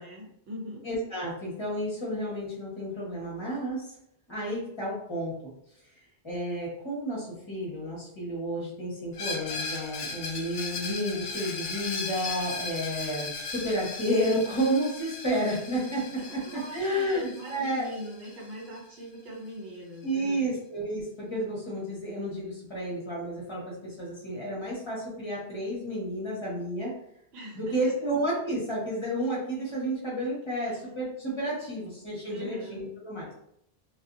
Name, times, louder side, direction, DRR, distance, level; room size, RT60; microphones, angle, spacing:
voice 1, 0.0-0.8 16.1-20.5 27.3-27.9 30.5-30.8 31.5-31.7 32.3-32.9, equal, 75° right, -3 dB, 1.0 m, -42 dB
voice 2, 0.8-3.9 4.3-5.3 6.2-17.9 20.0-26.9 27.5-33.3, equal, 30° left, -5 dB, 1.0 m, -31 dB
Screech, 9.1-18.8, left 4 dB, 70° left, 0.8 m, -37 dB
2.5 x 2.4 x 2.5 m, 0.72 s
omnidirectional pair, 1.1 m